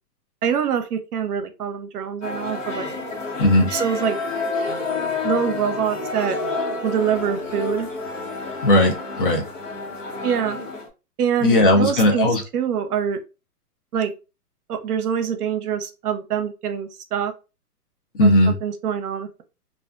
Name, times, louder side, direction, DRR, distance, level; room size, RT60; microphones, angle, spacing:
voice 1, 0.4-2.9 3.7-4.2 5.2-6.4 6.8-7.9 10.2-10.6 11.2-12.3 12.5-13.2 13.9-14.1 14.7-17.3 18.2-19.4, right 8 dB, 70° right, 8 dB, 0.7 m, -24 dB
sound 1, 2.2-10.9, left 3 dB, 50° left, 1.1 m, -29 dB
voice 2, 3.4-3.7 8.6-9.4 11.4-12.4 18.2-18.5, left 1 dB, 35° left, 2 dB, 0.5 m, -17 dB
2.4 x 2.2 x 2.4 m, 0.30 s
hypercardioid pair, 145°, 47 cm